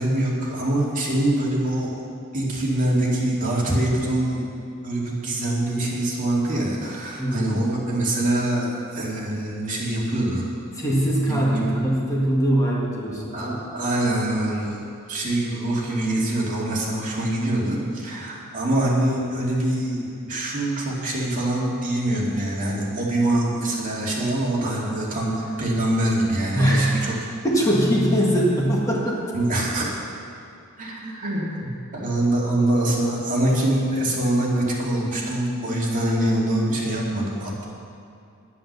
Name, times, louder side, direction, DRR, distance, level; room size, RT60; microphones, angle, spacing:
voice 1, 0.0-2.0 2.3-4.5 4.8-10.5 11.3-11.8 13.3-14.8 15.1-27.1 29.3-30.0 30.8-37.7, right 1 dB, 40° right, -4 dB, 2.5 m, -24 dB
voice 2, 7.2-7.5 10.7-13.6 26.5-27.1 27.4-29.2, equal, 15° left, -4 dB, 1.7 m, -21 dB
10.5 x 10.0 x 6.8 m, 2.5 s
head